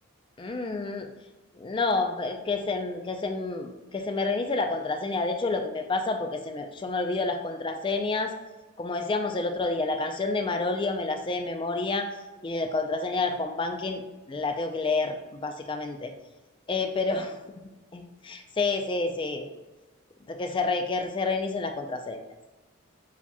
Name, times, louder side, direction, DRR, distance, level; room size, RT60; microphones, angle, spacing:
voice 1, 0.4-1.1 1.6-8.3 8.8-12.1 12.4-14.0 14.3-15.2 15.4-16.1 16.7-17.3 17.9-19.5 20.3-22.2, left 3 dB, 25° left, 5 dB, 0.3 m, -29 dB
7.0 x 2.8 x 2.2 m, 1.2 s
head